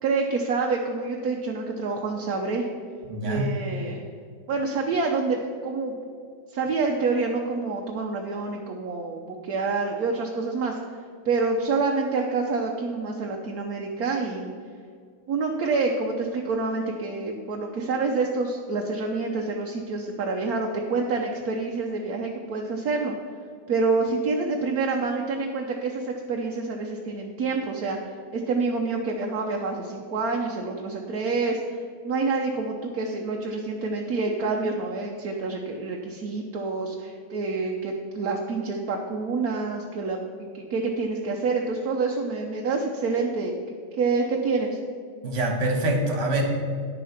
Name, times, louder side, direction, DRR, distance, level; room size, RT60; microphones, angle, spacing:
voice 1, 0.0-2.7 3.2-4.1 4.5-6.0 6.5-10.8 11.2-14.5 15.3-23.1 23.7-44.8, right 3 dB, 60° right, 1 dB, 1.1 m, -27 dB
voice 2, 3.0-3.5 45.2-46.4, right 1 dB, 40° right, 2 dB, 1.6 m, -25 dB
10.0 x 6.8 x 5.8 m, 2.2 s
omnidirectional pair, 2.2 m